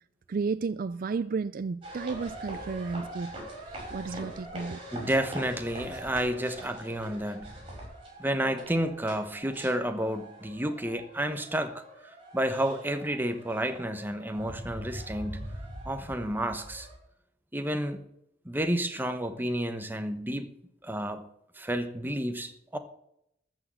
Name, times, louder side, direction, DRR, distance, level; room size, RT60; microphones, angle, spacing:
voice 1, 0.3-3.3 3.7-4.8, right 4 dB, 50° right, 0.4 m, -32 dB
sound 1, 1.8-17.0, right 1 dB, 30° right, 6.3 m, -43 dB
voice 2, 4.9-7.5 8.2-15.5 15.8-16.9 17.5-18.0 18.4-20.5 20.8-21.2 21.6-22.8, right 1 dB, 10° right, 1.1 m, -31 dB
13.5 x 6.3 x 8.1 m
head